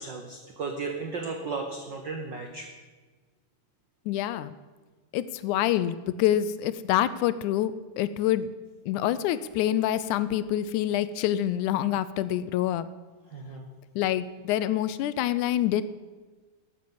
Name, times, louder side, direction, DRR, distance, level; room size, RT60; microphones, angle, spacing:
voice 1, 0.0-2.7 13.3-13.7, right 4 dB, 90° right, 3 dB, 0.9 m, -35 dB
voice 2, 4.1-4.5 5.1-8.5 8.9-12.9 14.0-15.8, left 12 dB, 80° left, 14 dB, 1.9 m, -26 dB
12.5 x 8.2 x 7.7 m, 1.4 s
omnidirectional pair, 3.6 m